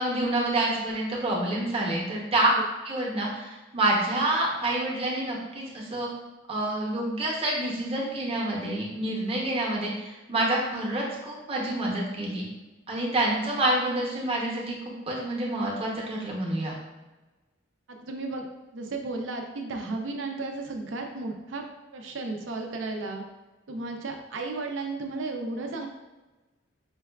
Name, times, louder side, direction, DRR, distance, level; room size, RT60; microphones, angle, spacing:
voice 1, 0.0-2.5 2.8-6.1 6.5-12.4 12.9-14.8 15.1-16.7, right 1 dB, 30° right, -3 dB, 0.8 m, -27 dB
voice 2, 18.0-18.4 18.7-21.6 21.9-23.2 23.7-25.9, right 3 dB, 75° right, 3 dB, 0.5 m, -34 dB
5.3 x 2.3 x 2.3 m, 1.1 s
head